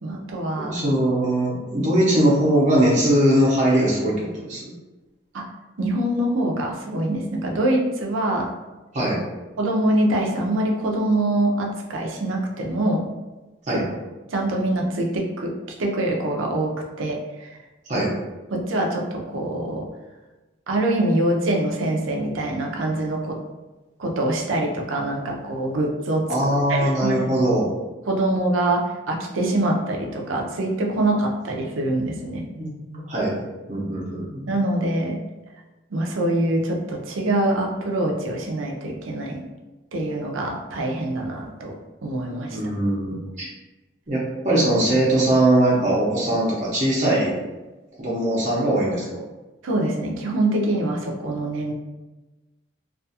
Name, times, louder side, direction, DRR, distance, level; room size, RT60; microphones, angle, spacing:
voice 1, 0.0-0.8 5.3-5.5 5.8-8.5 9.6-13.1 13.7-13.8 14.3-17.6 18.5-19.9 20.7-23.4 24.0-26.3 26.7-27.2 28.1-32.5 34.5-35.2 35.9-39.4 39.9-42.6 49.6-51.7, right 1 dB, 85° right, 1 dB, 0.5 m, -24 dB
voice 2, 0.5-4.7 8.9-9.2 13.7-13.9 17.9-18.1 26.3-27.7 32.6-33.4 33.7-34.5 42.5-43.5 44.1-47.3 48.0-49.2, right 1 dB, 35° right, -6 dB, 0.6 m, -21 dB
2.4 x 2.3 x 2.7 m, 1.1 s
head